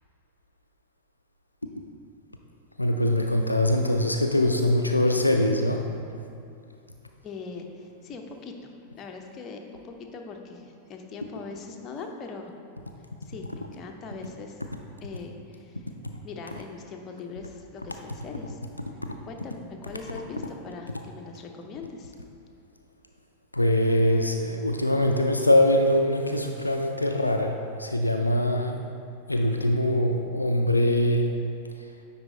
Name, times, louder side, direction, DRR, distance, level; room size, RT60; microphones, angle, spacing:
voice 1, 2.8-5.9 23.5-28.8 29.3-31.4, left 1 dB, 85° left, 3 dB, 0.3 m, -23 dB
voice 2, 7.2-12.5 13.2-14.6 15.0-15.9 16.2-18.6 19.3-22.1, left 4 dB, 30° left, 2 dB, 0.7 m, -41 dB
9.7 x 4.1 x 3.8 m, 2.5 s
figure-of-eight pair, 90°, 0 cm